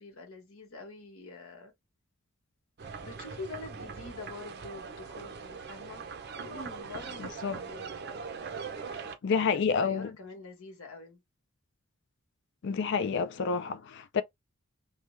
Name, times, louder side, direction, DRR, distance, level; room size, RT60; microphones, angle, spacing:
voice 1, 0.0-1.7 3.0-6.1 6.4-8.1 9.3-11.2, left 3 dB, 85° left, 1.3 m, -45 dB
sound 1, 2.8-9.2, right 5 dB, 50° right, 0.5 m, -41 dB
voice 2, 7.2-7.6 8.9-10.1 12.6-14.2, left 5 dB, 55° left, 0.4 m, -29 dB
3.2 x 2.2 x 3.1 m
head